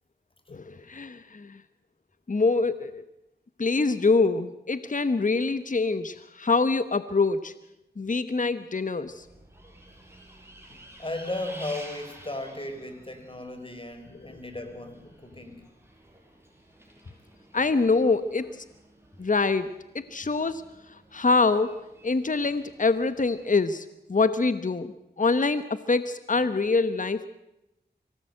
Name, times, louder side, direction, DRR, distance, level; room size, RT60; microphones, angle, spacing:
voice 1, 0.5-1.6 2.3-3.0 3.6-7.5 8.0-9.3 14.3-14.4 17.5-18.6 19.2-21.8 22.0-27.3, left 3 dB, 50° left, 13 dB, 1.1 m, -25 dB
Bus, 9.1-23.5, right 1 dB, 15° right, 6.5 m, -51 dB
voice 2, 11.0-15.6, left 1 dB, 30° left, 7 dB, 4.6 m, -36 dB
24.5 x 18.5 x 7.8 m, 0.88 s
cardioid pair, 45°, 18 cm